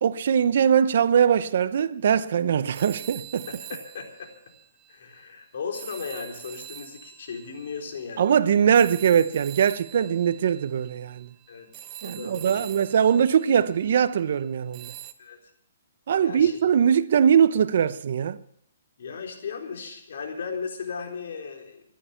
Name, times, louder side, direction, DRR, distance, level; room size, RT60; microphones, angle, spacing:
voice 1, 0.0-3.5 8.2-11.3 12.0-14.9 16.1-18.4, right 8 dB, 60° right, 0.8 m, -21 dB
sound 1, 2.7-5.2 5.7-14.2 14.7-15.1, right 12 dB, 20° right, 0.9 m, -44 dB
voice 2, 3.5-4.3 4.9-8.6 10.0-10.1 11.5-11.7 12.0-12.7 15.2-15.4 16.2-16.9 19.0-21.8, left 5 dB, 60° left, 4.1 m, -36 dB
14.5 x 11.5 x 7.2 m
hypercardioid pair, 160°, 0 cm